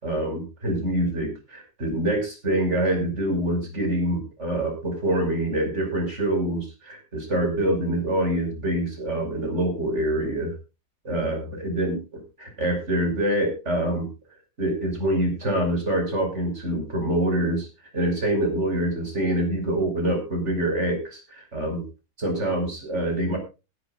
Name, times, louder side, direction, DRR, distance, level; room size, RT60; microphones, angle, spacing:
voice 1, 0.0-10.5 11.0-12.0 12.4-14.1 14.6-17.7 17.9-21.8 22.2-23.4, right 1 dB, 35° right, 4 dB, 5.7 m, -25 dB
21.0 x 11.5 x 2.4 m, 0.29 s
omnidirectional pair, 2.1 m